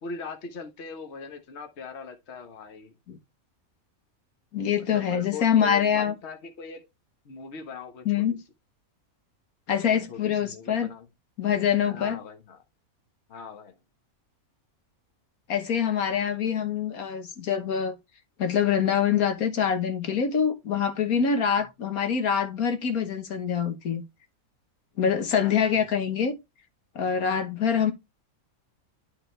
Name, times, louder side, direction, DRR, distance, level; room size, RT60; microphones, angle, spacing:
voice 1, 0.0-2.9 4.9-6.8 7.2-8.2 9.9-11.1 11.8-12.6 13.3-13.7 21.6-21.7 25.4-25.9, left 5 dB, 50° left, 1.4 m, -40 dB
voice 2, 4.5-6.1 8.0-8.4 9.7-10.9 11.4-12.2 15.5-17.9 18.4-24.0 25.0-26.3 26.9-27.9, left 7 dB, 80° left, 1.6 m, -25 dB
12.0 x 4.0 x 3.2 m
omnidirectional pair, 1.5 m